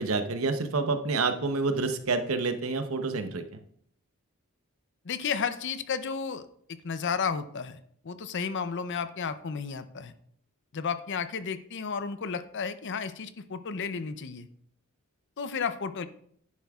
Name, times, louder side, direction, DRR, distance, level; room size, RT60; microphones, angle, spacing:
voice 1, 0.0-3.4, right 3 dB, 70° right, 7 dB, 0.8 m, -28 dB
voice 2, 5.0-6.5 6.8-7.8 8.0-10.1 10.7-14.5 15.4-16.1, left 6 dB, 55° left, 12 dB, 0.6 m, -32 dB
10.5 x 9.3 x 2.4 m, 0.66 s
head